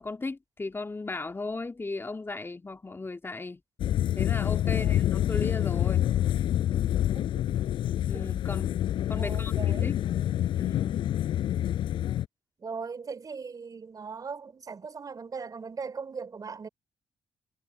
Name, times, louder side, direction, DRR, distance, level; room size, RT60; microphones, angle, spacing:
voice 1, 0.0-3.6 4.2-6.1 8.1-8.8 9.1-10.0 10.5-11.0, left 3 dB, 25° left, 2.4 m, -36 dB
sound 1, 3.8-12.3, left 12 dB, 70° left, 6.1 m, -27 dB
voice 2, 4.6-5.0 7.1-7.3 9.2-9.9 12.6-16.7, right 5 dB, 45° right, 4.5 m, -39 dB
hypercardioid pair, 45°, 9 cm